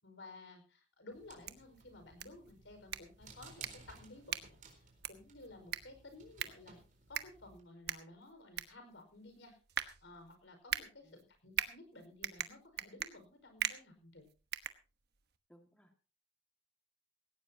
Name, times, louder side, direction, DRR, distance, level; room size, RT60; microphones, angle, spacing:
voice 1, 0.0-4.4 4.7-6.8 7.1-9.6 10.0-14.3, left 2 dB, 75° left, 6 dB, 5.1 m, -55 dB
sound 1, 1.1-7.6, right 4 dB, 45° right, 4.2 m, -58 dB
sound 2, 1.2-15.4, right 10 dB, 60° right, 1.1 m, -43 dB
voice 2, 10.8-11.3 15.5-16.1, equal, 5° left, 4 dB, 2.0 m, -65 dB
17.5 x 17.5 x 2.8 m, 0.35 s
head